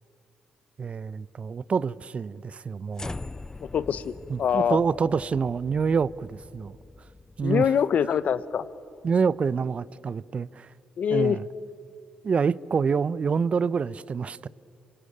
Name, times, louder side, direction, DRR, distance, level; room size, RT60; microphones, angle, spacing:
voice 1, 0.8-3.1 4.3-6.8 7.4-7.7 9.0-10.7 11.1-11.4 12.2-14.5, right 5 dB, 45° right, 0.7 m, -27 dB
sound 1, 2.9-9.3, left 2 dB, 20° left, 0.8 m, -43 dB
voice 2, 3.6-4.1 4.4-4.8 7.4-8.6 11.0-11.4, left 8 dB, 60° left, 1.0 m, -24 dB
27.0 x 25.0 x 8.8 m
hypercardioid pair, 45°, 3 cm